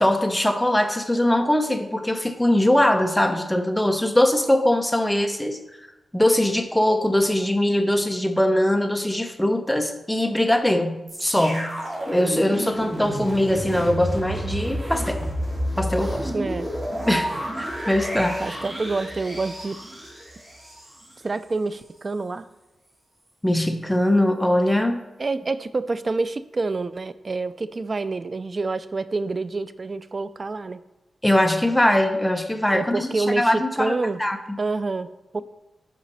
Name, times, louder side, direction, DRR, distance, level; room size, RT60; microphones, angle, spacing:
voice 1, 0.0-5.6 6.1-11.7 12.1-15.2 15.8-16.3 17.1-18.4 23.4-25.0 31.2-34.6, left 1 dB, 5° left, 6 dB, 0.9 m, -21 dB
sound 1, 11.1-21.1 21.7-21.8, right 1 dB, 25° right, 2.9 m, -30 dB
voice 2, 16.3-16.7 18.4-19.8 21.2-22.5 25.2-30.8 32.7-34.2 34.6-35.4, right 3 dB, 40° right, 14 dB, 0.4 m, -27 dB
11.0 x 5.1 x 4.2 m, 0.97 s
cardioid pair, 85°, 0 cm